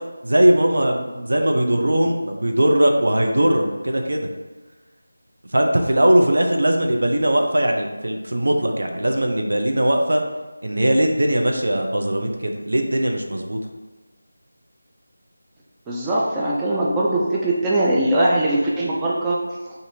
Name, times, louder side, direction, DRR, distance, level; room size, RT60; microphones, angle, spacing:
voice 1, 0.2-4.3 5.5-10.2 10.6-13.6, right 1 dB, 65° right, 3 dB, 0.5 m, -19 dB
voice 2, 15.9-19.4, right 1 dB, 10° right, -5 dB, 0.3 m, -21 dB
4.1 x 2.6 x 2.6 m, 1.2 s
figure-of-eight pair, 165°, 0 cm